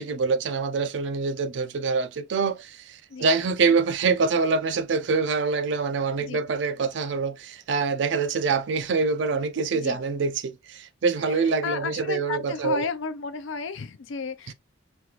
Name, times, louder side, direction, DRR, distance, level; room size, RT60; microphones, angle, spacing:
voice 1, 0.0-12.9 14.5-14.6, right 4 dB, 70° right, 0.4 m, -25 dB
voice 2, 11.3-14.5, left 5 dB, 85° left, 0.4 m, -33 dB
3.2 x 2.4 x 2.8 m
head